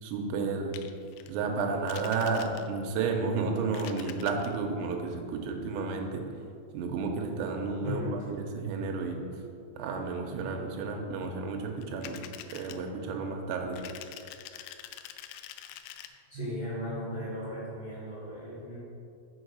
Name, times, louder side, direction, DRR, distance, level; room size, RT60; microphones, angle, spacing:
voice 1, 0.0-0.8 1.3-6.2 6.7-9.2 9.8-12.2 12.5-13.8 16.4-16.5, right 4 dB, 90° right, 2 dB, 3.4 m, -32 dB
sound 1, 0.7-1.3 1.9-2.9 3.6-4.6 11.8-12.8 13.7-16.1, left 11 dB, 85° left, 2.9 m, -45 dB
voice 2, 7.8-8.2 16.3-18.8, left 1 dB, 60° left, -11 dB, 1.5 m, -36 dB
6.6 x 6.3 x 6.3 m, 2.5 s
omnidirectional pair, 5.9 m